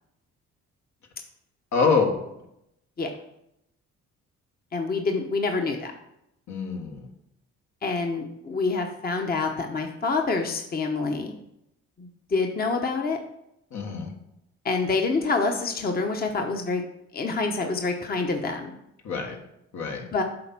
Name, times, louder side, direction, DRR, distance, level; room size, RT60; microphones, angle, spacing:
voice 1, 1.7-2.2 6.5-7.1 13.7-14.1 19.0-19.4 19.7-20.0, left 5 dB, 70° left, 1 dB, 1.6 m, -25 dB
voice 2, 4.7-5.9 7.8-11.3 12.0-13.2 14.6-16.8 17.1-18.7 20.1-20.2, left 3 dB, 30° left, 4 dB, 0.9 m, -27 dB
7.7 x 4.2 x 6.0 m, 0.81 s
cardioid pair, 80°, 29 cm